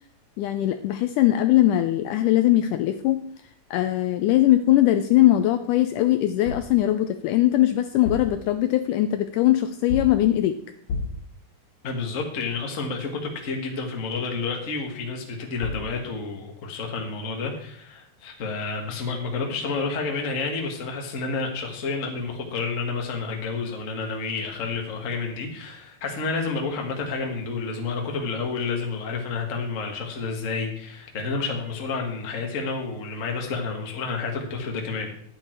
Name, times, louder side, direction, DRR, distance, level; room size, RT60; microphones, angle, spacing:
voice 1, 0.4-3.2 3.7-10.6, left 14 dB, 80° left, 8 dB, 1.9 m, -20 dB
sound 1, 6.4-6.8 7.9-8.4 9.9-10.3 10.9-11.3 15.3-15.4 15.6-15.9, left 3 dB, 60° left, 3.3 m, -31 dB
voice 2, 11.8-35.1, left 4 dB, 35° left, 2 dB, 1.2 m, -30 dB
11.0 x 8.8 x 4.5 m, 0.64 s
omnidirectional pair, 4.0 m